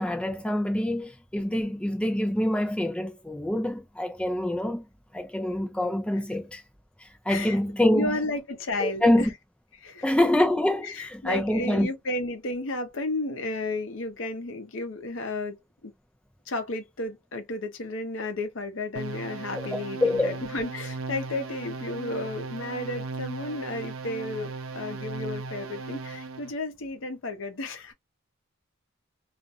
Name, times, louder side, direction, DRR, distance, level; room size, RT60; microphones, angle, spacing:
voice 1, 0.0-4.9 5.1-6.6 7.0-8.1 8.8-9.3 10.0-11.9 19.6-20.3, left 1 dB, 5° left, 0.5 m, -26 dB
voice 2, 7.3-7.6 7.9-9.3 9.8-10.1 10.8-15.9 16.5-27.9, left 2 dB, 65° left, 0.7 m, -33 dB
sound 1, 19.0-26.5, right 3 dB, 80° right, 0.5 m, -37 dB
2.4 x 2.1 x 2.7 m
head